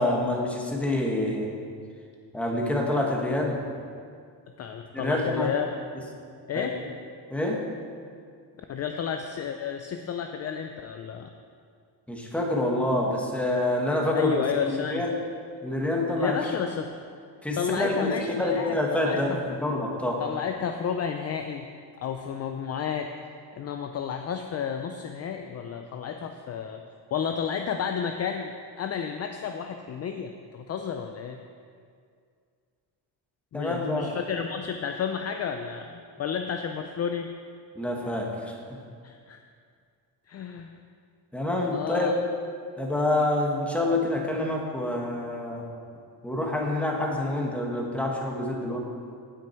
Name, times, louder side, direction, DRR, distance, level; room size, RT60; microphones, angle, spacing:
voice 1, 0.0-1.5 2.3-3.6 4.9-5.5 6.5-6.7 7.3-7.6 12.1-15.1 15.6-16.4 17.4-20.2 33.5-34.2 37.7-38.5 41.3-42.1 42.8-45.6 46.2-48.8, left 1 dB, 5° left, -1 dB, 1.4 m, -27 dB
voice 2, 4.6-5.7 6.5-6.8 8.7-11.3 14.1-15.1 16.1-16.9 17.6-19.4 20.2-21.7 22.0-23.1 23.5-26.8 27.1-31.4 33.5-37.4 39.0-39.4 40.3-40.7 41.7-42.1, left 7 dB, 40° left, 6 dB, 0.5 m, -31 dB
16.5 x 6.2 x 4.5 m, 2.2 s
cardioid pair, 145°, 42 cm